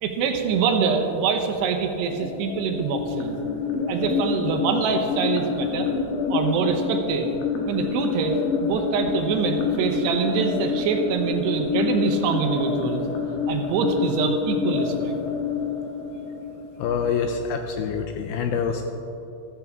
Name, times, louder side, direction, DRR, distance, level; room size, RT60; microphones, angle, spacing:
voice 1, 0.0-3.3 3.9-5.9 6.3-7.3 7.7-13.0 13.5-15.1, right 5 dB, 80° right, 4 dB, 2.9 m, -24 dB
sound 1, 2.1-17.1, left 5 dB, 65° left, 2.2 m, -27 dB
voice 2, 16.8-18.8, left 6 dB, 85° left, 5 dB, 2.3 m, -26 dB
14.5 x 14.0 x 3.5 m, 3.0 s
omnidirectional pair, 5.0 m